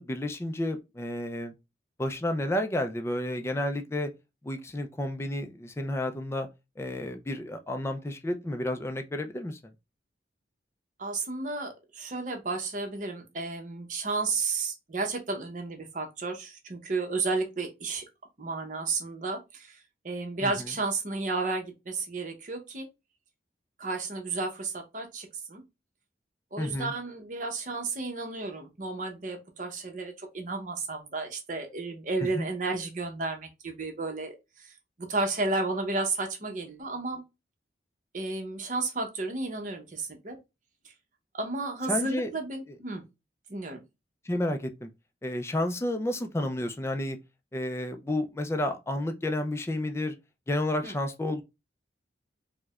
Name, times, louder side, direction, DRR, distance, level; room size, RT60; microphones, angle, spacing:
voice 1, 0.0-1.5 2.0-4.1 4.4-6.5 6.8-9.6 20.4-20.5 26.6-26.9 32.4-32.5 41.9-42.3 44.3-44.9 45.2-47.2 47.5-50.1 50.5-51.4, left 1 dB, 15° left, 0.4 m, -31 dB
voice 2, 11.0-18.0 18.4-19.8 20.0-22.9 23.8-25.6 26.5-37.2 38.1-40.4 40.8-40.9 41.3-43.0 43.5-43.8 50.8-51.0, right 3 dB, 45° right, 0.8 m, -32 dB
4.6 x 2.1 x 2.3 m
head